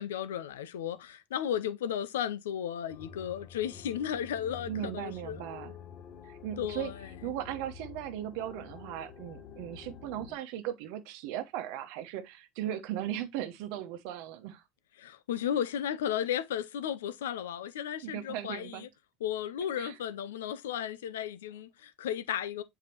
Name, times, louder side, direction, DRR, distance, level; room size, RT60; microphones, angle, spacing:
voice 1, 0.0-5.4 6.6-7.3 15.0-18.9 19.2-22.6, left 9 dB, 85° left, 0.6 m, -34 dB
sound 1, 2.9-10.4, left 7 dB, 50° left, 1.9 m, -48 dB
voice 2, 4.7-5.8 6.2-6.9 7.2-14.6 18.0-18.9 19.8-19.9, right 11 dB, 65° right, 1.0 m, -37 dB
7.6 x 4.7 x 2.9 m
hypercardioid pair, 85°, 0 cm